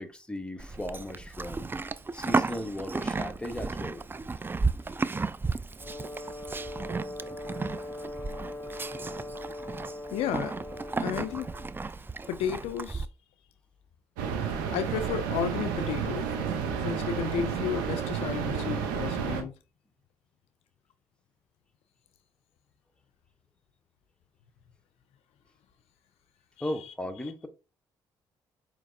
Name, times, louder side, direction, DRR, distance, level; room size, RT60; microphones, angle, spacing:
voice 1, 0.0-1.7 2.1-4.0 26.6-27.5, left 1 dB, 10° left, 0.8 m, -36 dB
Livestock farm animals working animals, 0.6-13.1, right 4 dB, 20° right, 0.3 m, -34 dB
Brass instrument, 5.8-11.8, left 1 dB, 35° left, 1.0 m, -41 dB
voice 2, 10.1-10.6 11.0-11.5 12.3-13.1 14.7-16.3 16.8-19.5 26.6-26.9 27.2-27.3, left 8 dB, 70° left, 0.4 m, -33 dB
sound 1, 14.2-19.4, right 7 dB, 90° right, 0.6 m, -31 dB
5.0 x 2.9 x 2.6 m
hypercardioid pair, 50°, 11 cm